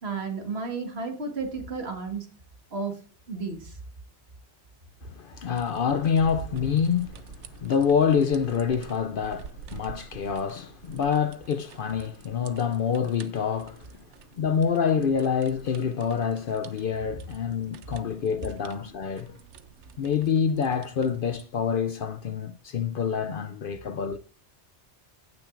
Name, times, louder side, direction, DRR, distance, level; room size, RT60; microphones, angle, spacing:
voice 1, 0.0-2.3 2.7-3.0 3.3-3.8, right 4 dB, 65° right, 1.8 m, -32 dB
voice 2, 5.0-13.9 14.4-19.4 20.0-24.2, left 7 dB, 60° left, 0.6 m, -26 dB
sound 1, 5.5-21.5, right 7 dB, 80° right, 1.0 m, -48 dB
16.5 x 6.0 x 2.5 m
omnidirectional pair, 1.2 m